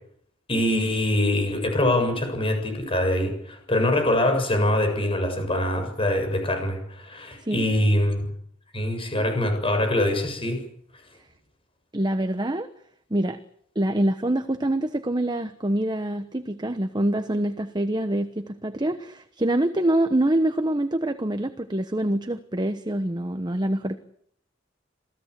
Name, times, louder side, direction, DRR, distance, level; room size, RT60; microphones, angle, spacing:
voice 1, 0.5-8.3 8.7-10.6, left 1 dB, 30° left, 5 dB, 7.2 m, -24 dB
voice 2, 11.9-12.7 13.1-13.4 13.7-24.0, right 1 dB, 20° right, 9 dB, 1.1 m, -25 dB
27.5 x 17.5 x 8.3 m, 0.67 s
head